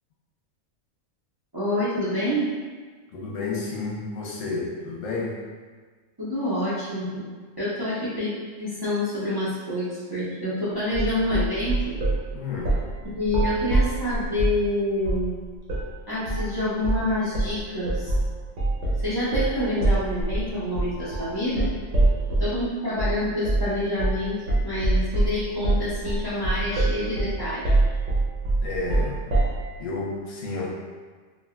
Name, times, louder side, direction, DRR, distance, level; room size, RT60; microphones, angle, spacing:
voice 1, 1.5-2.5 6.2-7.2 7.6-8.3 8.6-12.0 13.1-15.4 16.1-18.1 19.0-21.7 22.3-24.4 24.6-27.7, left 1 dB, 25° right, -12 dB, 0.6 m, -27 dB
voice 2, 3.1-5.4 12.3-12.8 28.6-29.4 29.8-30.7, left 3 dB, 85° left, -2 dB, 1.0 m, -31 dB
sound 1, 10.9-12.2 12.6-12.9 13.2-14.6 15.0-15.3 15.7-15.9 16.3-16.5 16.8-17.1 17.3-22.6 23.0-23.2 23.4-23.7 24.0-24.2 24.5-29.6, right 2 dB, 70° right, 1.0 m, -24 dB
3.5 x 2.4 x 2.2 m, 1.5 s
omnidirectional pair, 1.3 m